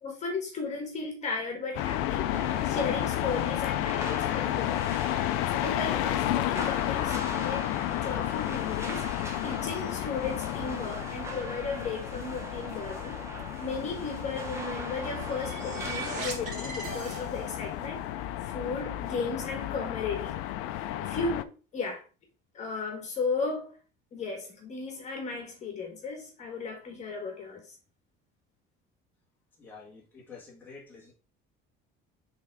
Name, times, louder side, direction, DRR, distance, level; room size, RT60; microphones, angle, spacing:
voice 1, 0.0-2.3 2.6-4.9 5.5-13.2 13.6-20.4 21.0-22.0 22.5-23.8 24.1-27.8, left 4 dB, 35° left, 1.8 m, -35 dB
sound 1, 1.8-21.4, left 13 dB, 85° left, 0.5 m, -32 dB
sound 2, 2.3-16.3, right 1 dB, 10° right, 1.1 m, -42 dB
sound 3, 14.8-17.8, right 2 dB, 35° right, 2.4 m, -39 dB
voice 2, 29.6-31.1, left 4 dB, 10° left, 1.6 m, -48 dB
5.6 x 3.6 x 4.8 m
cardioid pair, 170°, 21 cm